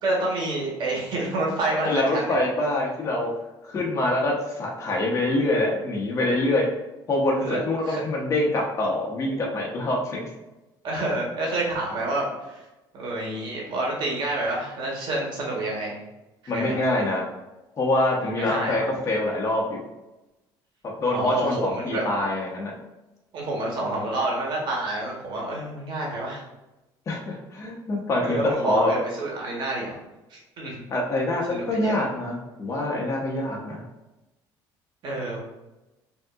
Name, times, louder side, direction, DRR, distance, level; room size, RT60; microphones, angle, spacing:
voice 1, 0.0-2.4 7.4-7.6 7.8-8.0 10.8-12.7 12.9-16.0 16.5-16.8 18.2-18.9 21.1-22.0 23.3-26.4 28.2-29.9 30.3-30.8 31.5-31.9 35.0-35.4, right 2 dB, 60° right, -3 dB, 1.4 m, -28 dB
voice 2, 1.8-3.3 3.6-6.7 7.1-10.3 16.5-17.2 17.8-19.8 21.0-22.7 27.1-28.9 30.9-33.8, left 1 dB, 35° left, -2 dB, 1.0 m, -25 dB
5.1 x 2.8 x 2.5 m, 1.0 s
cardioid pair, 100°, 9 cm